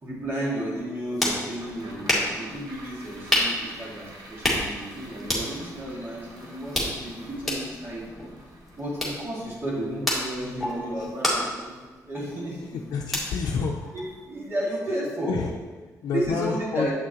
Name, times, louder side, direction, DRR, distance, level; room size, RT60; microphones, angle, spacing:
voice 1, 0.0-8.1 8.7-11.8 12.0-12.6 13.9-15.4 16.1-16.9, right 1 dB, 40° right, -6 dB, 2.2 m, -32 dB
sound 1, 0.8-14.5, left 1 dB, ahead, 2.0 m, -31 dB
sound 2, 1.5-12.0 12.4-12.5, right 2 dB, 75° right, 1.3 m, -49 dB
voice 2, 12.6-13.8 15.2-15.5 16.0-16.9, left 5 dB, 80° left, -1 dB, 0.6 m, -29 dB
7.9 x 6.2 x 3.0 m, 1.3 s
cardioid pair, 95°, 7 cm